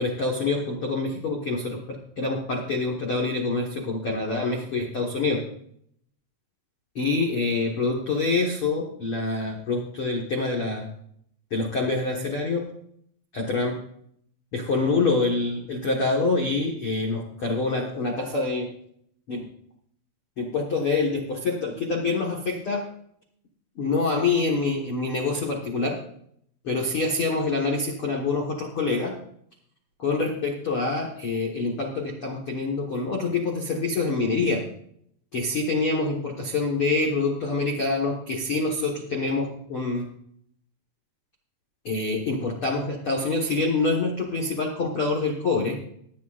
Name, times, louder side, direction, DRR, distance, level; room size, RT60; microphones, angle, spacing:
voice 1, 0.0-1.8 2.2-5.4 6.9-10.9 11.5-12.6 13.3-13.7 14.5-18.7 19.3-19.4 20.4-22.8 23.8-25.9 26.6-29.1 30.0-34.6 35.3-40.0 41.8-45.8, left 3 dB, 90° left, -1 dB, 1.2 m, -26 dB
20.0 x 10.0 x 2.5 m, 0.68 s
omnidirectional pair, 5.2 m